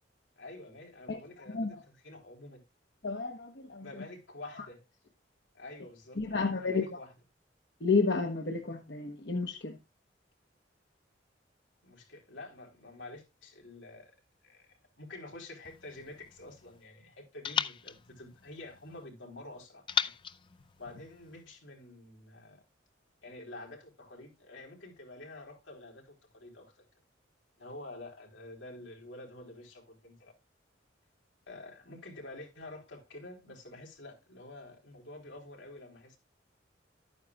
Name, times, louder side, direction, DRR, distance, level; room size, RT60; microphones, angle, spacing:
voice 1, 0.4-2.6 3.8-4.8 5.5-7.1 11.8-14.2 14.4-20.1 20.8-22.6 23.2-26.8 27.6-30.3 31.5-36.2, left 2 dB, 85° left, 3.9 m, -48 dB
voice 2, 3.0-3.8 6.2-6.8 7.8-9.8, left 4 dB, 65° left, 1.1 m, -31 dB
sound 1, 15.6-16.9 17.4-19.1 19.9-21.5, left 7 dB, 25° left, 0.4 m, -37 dB
12.5 x 9.4 x 2.4 m
head